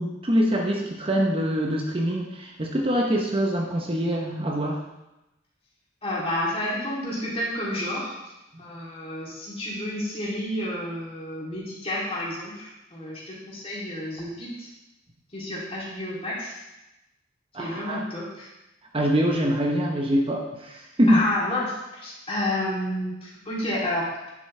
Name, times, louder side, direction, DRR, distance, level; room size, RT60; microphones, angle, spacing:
voice 1, 0.0-4.8 17.5-18.0 18.9-21.2, equal, 30° right, 0 dB, 0.9 m, -24 dB
voice 2, 6.0-8.1 8.6-14.7 15.3-16.6 17.6-18.5 21.1-24.3, left 1 dB, 30° left, -6 dB, 2.9 m, -30 dB
10.0 x 7.6 x 3.3 m, 0.97 s
head